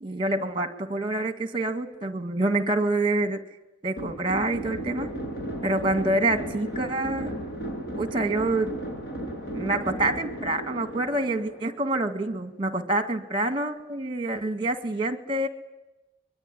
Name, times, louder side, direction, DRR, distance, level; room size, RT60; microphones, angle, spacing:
voice 1, 0.0-3.5 3.8-5.1 5.6-7.3 8.0-8.7 9.5-15.5, right 2 dB, 25° right, 9 dB, 1.9 m, -27 dB
sound 1, 4.0-12.3, right 1 dB, 55° left, 7.1 m, -35 dB
25.0 x 22.5 x 9.9 m, 0.98 s
head